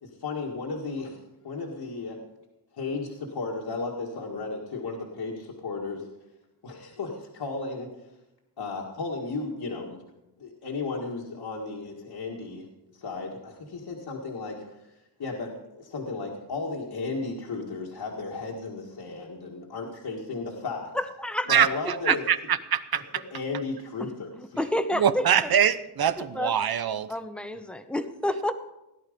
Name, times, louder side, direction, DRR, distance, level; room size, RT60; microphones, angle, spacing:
voice 1, 0.0-1.2 1.4-2.2 2.7-6.1 6.6-7.9 8.6-10.0 10.4-12.6 12.9-14.6 15.2-15.5 15.8-20.9 21.5-22.2 23.3-24.3, left 3 dB, 75° left, -3 dB, 2.0 m, -34 dB
voice 2, 20.9-21.5 22.1-22.2 24.0-24.1 24.6-25.2 26.2-26.5 27.1-28.5, left 1 dB, 5° left, 9 dB, 0.9 m, -29 dB
voice 3, 22.1-23.2 24.9-27.1, right 8 dB, 65° right, 14 dB, 0.8 m, -23 dB
17.0 x 11.0 x 5.2 m, 0.93 s
wide cardioid pair, 125°, 40 cm